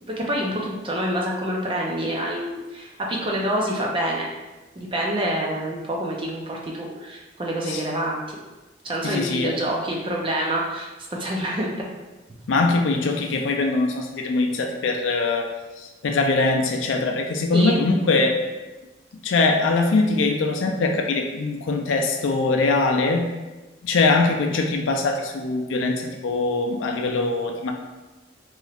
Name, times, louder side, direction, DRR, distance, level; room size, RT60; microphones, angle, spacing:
voice 1, 0.1-4.3 4.8-8.4 8.8-11.7 17.5-17.8, right 1 dB, 25° right, -2 dB, 0.4 m, -27 dB
voice 2, 9.0-9.5 12.5-15.5 15.8-18.4 19.2-23.2 23.8-27.7, left 3 dB, 85° left, 3 dB, 0.4 m, -22 dB
3.1 x 2.8 x 2.4 m, 1.2 s
head